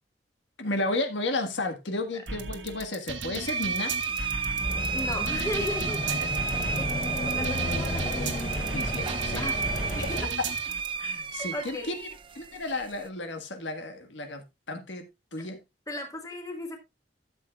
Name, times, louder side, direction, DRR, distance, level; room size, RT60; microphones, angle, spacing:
voice 1, 0.6-4.0 5.9-6.3 8.7-9.4 11.0-12.1 12.3-15.1 15.3-15.6, left 2 dB, 90° left, 1.6 m, -33 dB
sound 1, 2.3-10.9, right 4 dB, 85° right, 1.5 m, -37 dB
sound 2, 3.5-13.1, right 5 dB, 30° right, 0.5 m, -32 dB
voice 2, 4.5-6.0 6.8-6.9 7.2-8.3 9.3-10.3 11.4-11.9 15.4-15.5 15.9-16.8, left 1 dB, 20° left, 1.8 m, -36 dB
sound 3, 4.6-10.3, left 1 dB, 50° left, 3.4 m, -33 dB
13.0 x 7.6 x 2.4 m
head